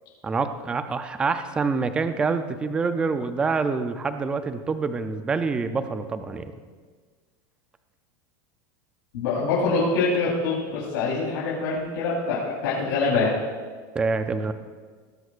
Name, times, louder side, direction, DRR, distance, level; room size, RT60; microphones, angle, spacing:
voice 1, 0.2-6.5 13.9-14.5, right 4 dB, 10° right, 9 dB, 0.4 m, -26 dB
voice 2, 9.1-13.3, left 4 dB, 70° left, -7 dB, 3.6 m, -24 dB
19.0 x 12.5 x 2.4 m, 1.5 s
supercardioid pair, 175°, 11 cm